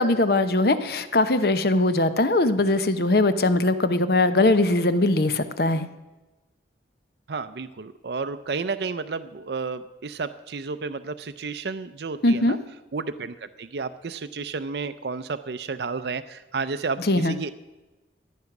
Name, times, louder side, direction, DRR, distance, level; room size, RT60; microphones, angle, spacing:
voice 1, 0.0-5.9 12.2-12.6 17.1-17.4, left 2 dB, 55° left, 11 dB, 0.9 m, -21 dB
voice 2, 7.3-12.6 12.9-17.5, right 4 dB, 65° right, 11 dB, 0.5 m, -32 dB
14.5 x 10.5 x 6.0 m, 1.1 s
head